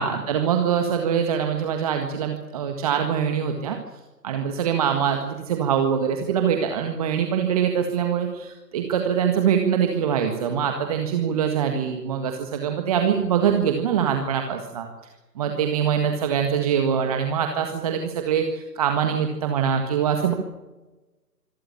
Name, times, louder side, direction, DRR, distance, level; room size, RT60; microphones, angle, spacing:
voice 1, 0.0-3.8 4.2-14.9 15.4-20.3, right 8 dB, 20° right, 5 dB, 1.7 m, -23 dB
26.0 x 13.5 x 10.0 m, 1.1 s
figure-of-eight pair, 145°, 49 cm